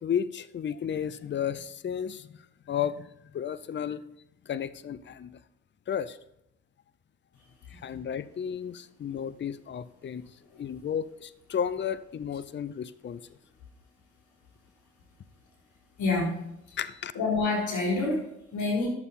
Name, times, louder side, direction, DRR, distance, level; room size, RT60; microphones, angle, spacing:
voice 1, 0.0-2.3 2.7-3.1 3.3-4.0 4.5-5.4 5.9-6.2 7.7-10.2 10.6-13.2 16.8-17.1, left 8 dB, 35° left, 16 dB, 0.6 m, -33 dB
voice 2, 16.0-16.5 17.1-18.9, left 3 dB, 65° left, -3 dB, 4.1 m, -28 dB
10.5 x 7.0 x 4.2 m, 0.80 s
hypercardioid pair, 50°, 31 cm